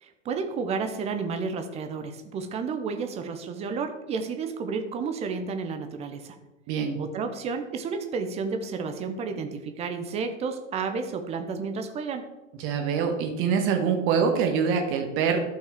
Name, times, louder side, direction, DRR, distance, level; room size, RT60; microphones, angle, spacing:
voice 1, 0.0-6.4 7.0-12.2, right 5 dB, 15° right, 7 dB, 0.7 m, -31 dB
voice 2, 6.7-7.0 12.6-15.4, right 6 dB, 30° right, 4 dB, 1.4 m, -24 dB
12.0 x 5.6 x 3.6 m, 1.1 s
figure-of-eight pair, 100°, 39 cm